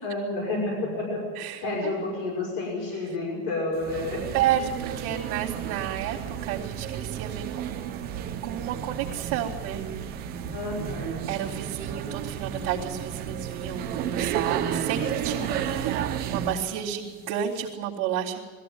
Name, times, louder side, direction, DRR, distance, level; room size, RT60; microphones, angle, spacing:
voice 1, 0.0-1.2 1.6-4.2 10.5-11.3, left 2 dB, 45° left, -3 dB, 6.4 m, -30 dB
voice 2, 1.3-1.9 4.3-8.0 8.4-10.3 11.3-18.4, right 10 dB, 50° right, -8 dB, 2.6 m, -31 dB
sound 1, 3.8-16.7, right 9 dB, 20° right, 0.9 m, -32 dB
20.5 x 15.0 x 9.4 m, 1.5 s
supercardioid pair, 180°, 45 cm